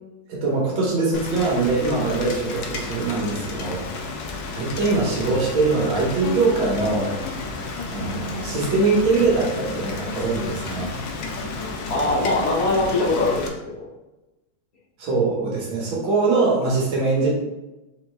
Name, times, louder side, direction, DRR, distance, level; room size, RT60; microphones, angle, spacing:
voice 1, 0.3-3.8 4.5-7.2 7.9-10.9 15.0-17.3, right 3 dB, 75° right, -4 dB, 1.9 m, -22 dB
Rain, 1.1-13.5, left 3 dB, 70° left, 1.2 m, -32 dB
sound 1, 5.6-13.0, left 3 dB, 90° left, 1.6 m, -37 dB
voice 2, 11.9-13.9, left 2 dB, 55° left, -3 dB, 1.0 m, -22 dB
4.4 x 3.0 x 3.3 m, 1.0 s
omnidirectional pair, 2.2 m